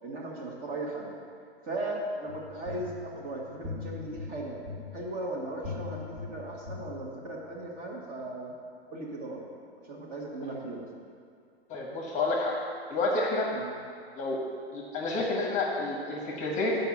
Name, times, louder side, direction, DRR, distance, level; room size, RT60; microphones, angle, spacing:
voice 1, 0.0-1.1 1.6-4.6 4.9-8.5 8.9-9.5 9.9-10.8 13.5-13.7, right 2 dB, 25° right, -2 dB, 1.5 m, -37 dB
sound 1, 2.3-7.5, left 4 dB, 45° right, 2.1 m, -42 dB
voice 2, 11.7-12.6 12.9-13.5 14.2-14.4 14.7-16.8, left 2 dB, 20° left, -1 dB, 1.1 m, -29 dB
7.0 x 5.3 x 7.1 m, 2.3 s
hypercardioid pair, 140°, 33 cm